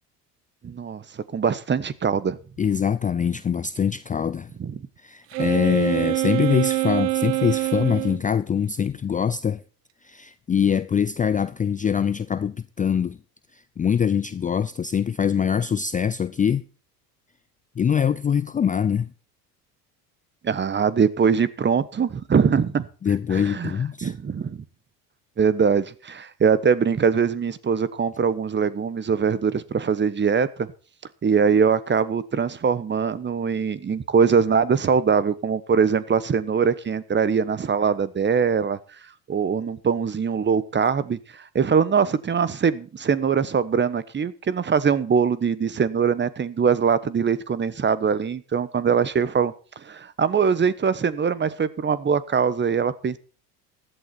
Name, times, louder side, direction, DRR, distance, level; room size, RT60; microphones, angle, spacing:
voice 1, 0.6-2.4 4.6-4.7 20.4-22.8 23.3-23.7 24.0-24.6 25.4-30.7 31.2-38.8 39.3-49.5 49.8-53.2, right 6 dB, 20° right, 1.2 m, -22 dB
voice 2, 2.6-4.5 5.0-9.6 10.0-13.2 13.5-16.6 17.8-19.1 23.0-24.1, left 7 dB, 15° left, 0.5 m, -23 dB
Wind instrument woodwind instrument, 5.3-8.2, right 20 dB, 80° right, 0.7 m, -24 dB
15.5 x 11.5 x 4.3 m
hypercardioid pair, 75°, 48 cm